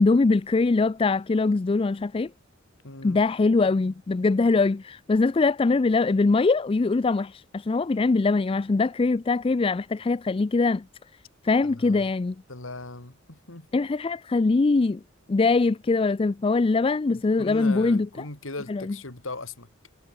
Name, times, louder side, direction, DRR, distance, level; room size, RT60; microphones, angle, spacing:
voice 1, 0.0-2.3 3.0-10.9 11.4-12.4 13.7-15.0 15.3-18.1 18.7-18.9, left 3 dB, 25° left, 0.4 m, -22 dB
voice 2, 2.8-3.2 11.6-12.1 12.5-13.8 17.1-19.7, left 2 dB, 80° left, 3.5 m, -39 dB
head